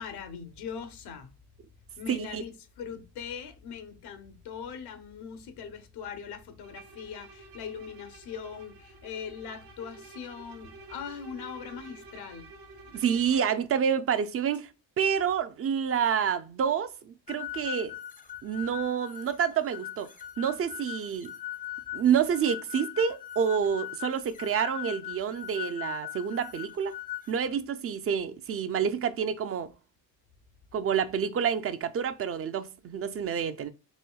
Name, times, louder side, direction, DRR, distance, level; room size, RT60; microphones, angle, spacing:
voice 1, 0.0-1.3 2.0-12.5, left 7 dB, 90° left, 0.9 m, -41 dB
voice 2, 2.1-2.4 12.9-14.7 15.0-17.9 18.4-20.1 20.4-21.3 21.9-26.9 27.3-29.7 30.7-33.7, right 7 dB, 40° right, 0.4 m, -28 dB
Bowed string instrument, 6.6-13.6, right 3 dB, 85° right, 1.0 m, -51 dB
sound 1, 17.3-27.3, left 13 dB, 25° left, 0.3 m, -40 dB
4.2 x 3.1 x 2.3 m
cardioid pair, 110°, 38 cm